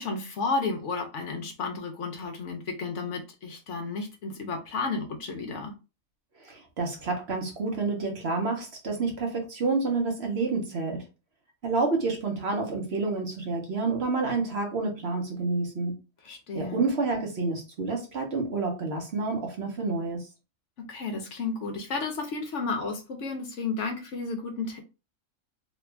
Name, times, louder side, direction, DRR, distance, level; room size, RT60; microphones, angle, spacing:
voice 1, 0.0-5.7 16.2-16.8 20.8-24.8, left 4 dB, 65° left, 4 dB, 0.9 m, -32 dB
voice 2, 6.4-11.0 11.6-16.0 16.5-20.3, right 3 dB, 50° right, 1 dB, 1.0 m, -29 dB
3.0 x 2.4 x 3.3 m, 0.29 s
omnidirectional pair, 1.5 m